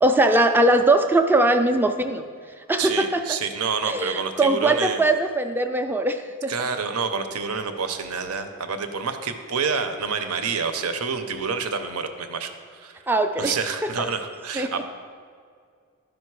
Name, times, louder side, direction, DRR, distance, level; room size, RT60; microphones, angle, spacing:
voice 1, 0.0-2.2 2.7-3.2 3.8-6.5 13.1-13.6 14.5-14.7, right 2 dB, 10° right, 7 dB, 0.4 m, -20 dB
voice 2, 2.8-5.0 6.5-13.0 13.4-14.8, right 5 dB, 75° right, 8 dB, 0.7 m, -28 dB
12.0 x 5.2 x 4.7 m, 2.1 s
head